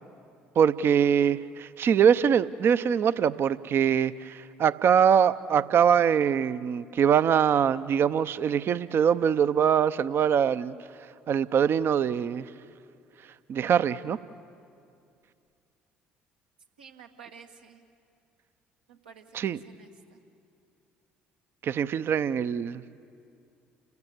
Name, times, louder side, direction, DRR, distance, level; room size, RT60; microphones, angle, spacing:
voice 1, 0.6-10.7 11.3-12.5 13.5-14.2 19.3-19.6 21.6-22.8, right 8 dB, 45° right, 14 dB, 0.6 m, -23 dB
voice 2, 16.8-17.9 18.9-20.2, right 7 dB, 85° right, 2 dB, 1.5 m, -51 dB
29.0 x 16.5 x 9.5 m, 2.4 s
hypercardioid pair, 55°, 5 cm